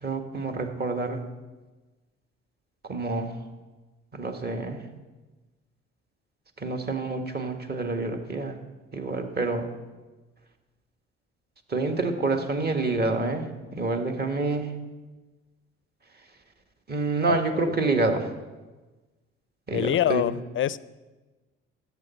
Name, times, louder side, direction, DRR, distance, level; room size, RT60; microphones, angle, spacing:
voice 1, 0.0-1.2 2.8-3.4 4.1-4.8 6.6-8.6 8.9-9.7 11.7-13.5 13.7-14.7 16.9-18.3 19.7-20.2, right 3 dB, 35° right, 5 dB, 1.7 m, -27 dB
voice 2, 17.3-17.7 19.7-20.8, left 11 dB, 40° left, 18 dB, 0.5 m, -26 dB
14.0 x 8.3 x 4.4 m, 1.2 s
hypercardioid pair, 60°, 30 cm